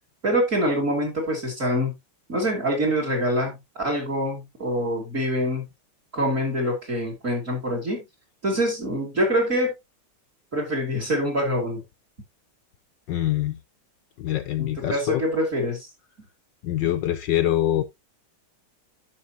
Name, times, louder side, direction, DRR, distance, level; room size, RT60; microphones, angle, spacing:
voice 1, 0.2-1.9 2.3-5.6 6.1-8.0 8.4-9.7 10.5-11.8 14.6-15.9, equal, 35° right, 3.1 m, -25 dB
voice 2, 13.1-13.6 14.2-15.2 16.6-17.8, left 13 dB, 70° left, 1.2 m, -24 dB
11.0 x 6.5 x 2.7 m
omnidirectional pair, 2.3 m